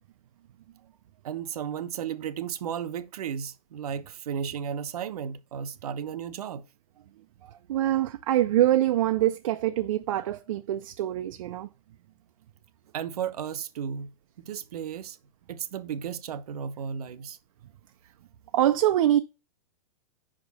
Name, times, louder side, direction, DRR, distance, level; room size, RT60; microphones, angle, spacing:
voice 1, 1.2-6.6 7.4-7.6 12.9-14.1 14.4-15.2 15.5-17.4, right 8 dB, 80° right, 1.0 m, -34 dB
voice 2, 7.7-11.7 18.5-19.2, right 13 dB, 60° right, 0.5 m, -24 dB
5.3 x 5.0 x 4.1 m
supercardioid pair, 165°, 19 cm